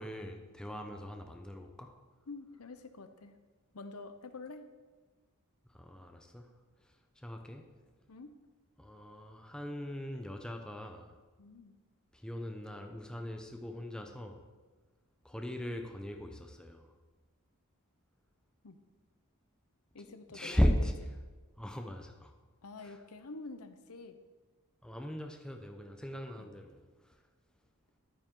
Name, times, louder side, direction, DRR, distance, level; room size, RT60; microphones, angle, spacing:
voice 1, 0.0-1.9 5.7-6.5 7.2-7.6 8.8-11.1 12.1-14.4 15.2-16.8 20.0-20.9 21.6-22.3 22.8-23.0 24.8-26.8, equal, 5° left, 3 dB, 0.7 m, -37 dB
voice 2, 2.3-3.4 3.7-4.7 8.1-8.3 11.4-11.8 18.6-18.8 19.9-20.9 22.6-24.2 26.4-26.5, left 3 dB, 75° left, 9 dB, 0.8 m, -47 dB
11.5 x 9.2 x 3.8 m, 1.3 s
head